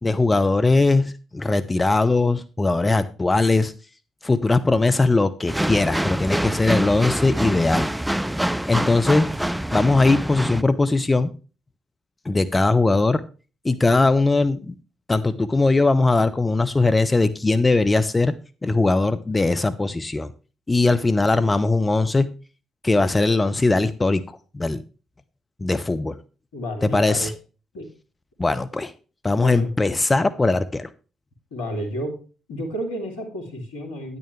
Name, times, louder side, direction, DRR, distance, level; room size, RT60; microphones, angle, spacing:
voice 1, 0.0-3.7 4.2-7.9 8.7-9.3 9.7-11.3 12.2-13.2 13.6-14.7 15.1-18.3 18.6-20.3 20.7-22.3 22.8-24.2 24.5-24.8 25.6-26.2 26.8-27.3 28.4-28.9 29.2-30.9, left 3 dB, 25° left, 11 dB, 0.9 m, -20 dB
sound 1, 5.5-10.6, right 1 dB, 5° right, 0.5 m, -25 dB
voice 2, 26.5-27.3 27.7-27.9 29.4-29.7 31.5-32.2 32.5-34.2, equal, 85° left, 5 dB, 2.6 m, -31 dB
10.5 x 9.8 x 3.3 m, 0.35 s
hypercardioid pair, 45°, 0 cm